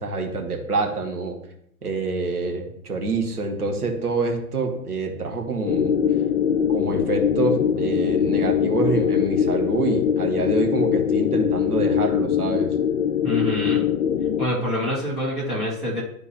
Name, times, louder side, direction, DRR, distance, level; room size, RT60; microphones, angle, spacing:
voice 1, 0.0-1.4 1.8-6.0 6.7-12.8, right 3 dB, 80° right, 2 dB, 1.6 m, -26 dB
sound 1, 5.7-14.5, left 8 dB, 65° left, 0.7 m, -22 dB
voice 2, 13.2-13.8 14.4-16.0, left 1 dB, ahead, -12 dB, 0.3 m, -26 dB
11.5 x 4.4 x 2.9 m, 0.75 s
figure-of-eight pair, 105°, 45 cm